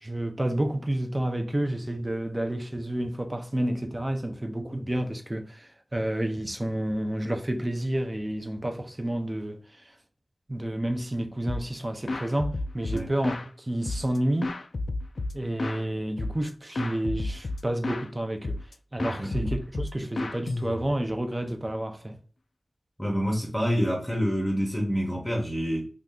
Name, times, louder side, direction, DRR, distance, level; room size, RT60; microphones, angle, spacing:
voice 1, 0.0-9.6 10.5-13.3 13.6-14.6 15.3-18.5 18.9-22.2, right 1 dB, 25° right, 0.6 m, -30 dB
sound 1, 11.5-11.8 12.1-13.5 13.9-15.8 16.2-16.5 16.8-18.1 18.4-18.7 19.0-21.1, left 2 dB, 80° left, 0.3 m, -32 dB
voice 2, 19.2-19.5 23.0-25.9, equal, 5° left, 0.9 m, -27 dB
2.7 x 2.4 x 3.5 m
wide cardioid pair, 80°, 0 cm